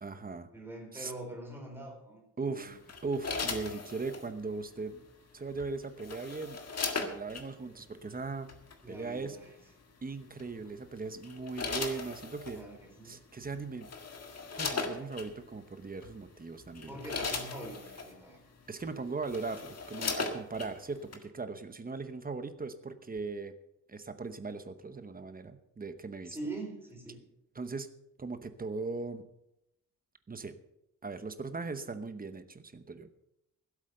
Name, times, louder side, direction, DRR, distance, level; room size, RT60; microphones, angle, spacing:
voice 1, 0.0-0.5 0.9-1.1 2.4-5.0 5.3-6.6 7.0-8.5 8.9-9.4 10.0-12.6 13.0-13.9 14.6-16.9 18.7-23.5 23.9-26.4 27.6-27.9 28.2-29.2 30.3-30.6 31.0-33.1, right 4 dB, 25° right, 10 dB, 0.9 m, -39 dB
voice 2, 0.5-2.7 8.8-9.5 12.5-13.2 16.9-18.4 26.3-27.2, right 2 dB, 5° right, 0 dB, 4.2 m, -44 dB
sound 1, 2.9-4.3 5.6-7.5 8.5-8.7 10.4-10.7 11.2-12.6 13.4-13.5 13.8-15.3 16.0-16.2 16.6-18.1 18.8-18.9 19.2-20.7 21.1-21.2, left 4 dB, 50° left, 1.9 m, -37 dB
16.0 x 8.2 x 6.7 m, 0.83 s
wide cardioid pair, 170°, 33 cm